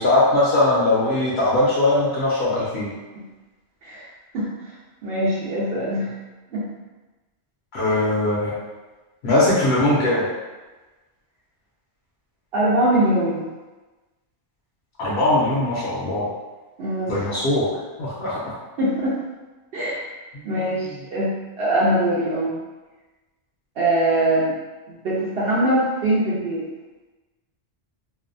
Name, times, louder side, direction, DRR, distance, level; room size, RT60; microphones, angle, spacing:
voice 1, 0.0-2.9 7.7-8.5 9.2-10.2 15.0-16.3 17.1-17.7 18.0-18.5 20.3-20.4, left 2 dB, 75° left, -8 dB, 0.9 m, -20 dB
voice 2, 5.0-6.1 6.5-6.7 12.5-13.4 16.8-17.2 18.8-19.2 19.7-20.1 20.4-22.6 23.8-24.5 24.9-26.7, right 1 dB, 65° right, -8 dB, 0.8 m, -22 dB
2.6 x 2.2 x 2.5 m, 1.2 s
omnidirectional pair, 1.1 m